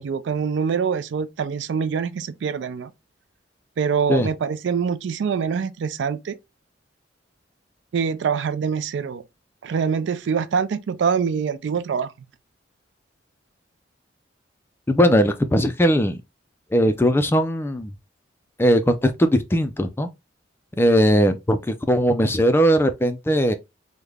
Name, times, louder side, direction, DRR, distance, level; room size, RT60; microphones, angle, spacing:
voice 1, 0.0-2.9 3.8-6.4 7.9-9.2 9.6-12.1, right 6 dB, 70° right, 0.3 m, -24 dB
voice 2, 14.9-16.2 16.7-17.9 18.6-20.1 20.8-23.5, equal, 10° left, 0.3 m, -19 dB
3.5 x 2.1 x 3.2 m
head